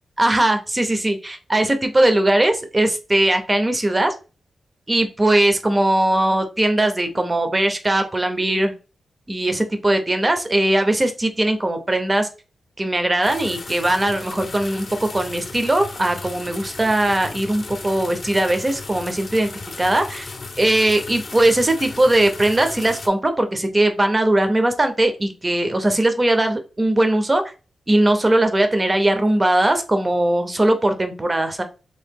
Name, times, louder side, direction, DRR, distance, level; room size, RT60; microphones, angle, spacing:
voice 1, 0.2-4.1 4.9-8.7 9.3-12.3 12.8-19.5 19.8-20.3 20.6-27.4 27.9-31.6, right 1 dB, 15° right, 7 dB, 0.6 m, -19 dB
sound 1, 13.2-23.1, left 3 dB, 35° left, 0.7 m, -35 dB
3.3 x 2.8 x 3.5 m, 0.32 s
wide cardioid pair, 160°, 0 cm